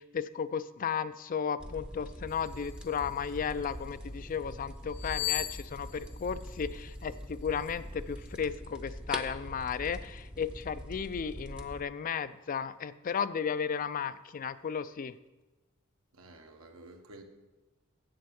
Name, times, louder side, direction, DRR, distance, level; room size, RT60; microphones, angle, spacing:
voice 1, 0.0-15.2, left 7 dB, 40° left, 14 dB, 0.4 m, -34 dB
sound 1, 1.6-11.8, equal, 5° right, 0.6 m, -43 dB
sound 2, 2.3-3.8 4.9-7.1 7.5-7.7, left 12 dB, 70° left, 0.9 m, -39 dB
voice 2, 16.1-17.2, right 2 dB, 85° right, 4 dB, 1.3 m, -51 dB
7.7 x 7.7 x 7.0 m, 1.2 s
head